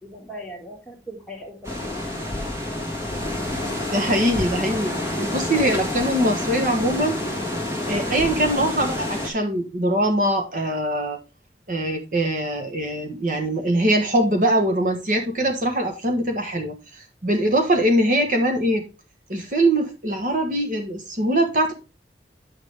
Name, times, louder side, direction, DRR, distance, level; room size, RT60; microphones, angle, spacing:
voice 1, 0.0-2.0, equal, 5° left, -1 dB, 2.0 m, -39 dB
sound 1, 1.6-9.3, left 1 dB, 15° right, 2.0 m, -28 dB
voice 2, 3.9-7.2 7.9-11.2 11.7-18.8 19.3-21.7, right 1 dB, 45° right, 4 dB, 1.3 m, -22 dB
8.5 x 6.5 x 3.4 m, 0.29 s
head